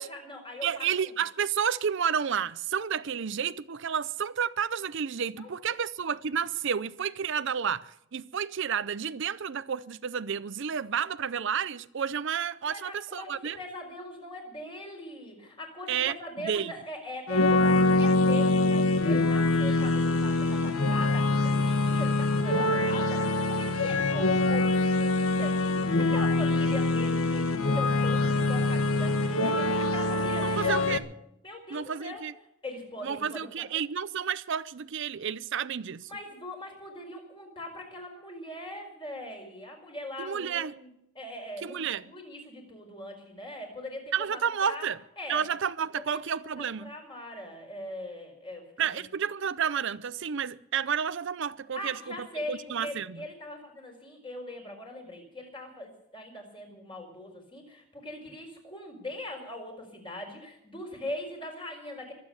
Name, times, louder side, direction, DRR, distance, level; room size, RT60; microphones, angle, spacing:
voice 1, 0.0-1.2 5.4-5.5 12.6-31.0 31.4-32.2 32.6-33.7 36.1-40.9 41.1-41.8 42.0-44.9 45.2-45.5 45.9-49.0 51.8-62.1, left 1 dB, 25° left, 4.7 m, -41 dB
voice 2, 0.6-13.6 15.9-16.2 16.4-16.7 30.4-31.0 31.7-32.3 33.0-36.1 40.2-40.7 41.6-42.0 44.1-45.0 45.3-46.9 48.8-53.2, right 7 dB, 55° right, 0.5 m, -31 dB
sound 1, 17.3-31.0, left 2 dB, 75° left, 1.4 m, -24 dB
24.0 x 8.5 x 6.9 m
head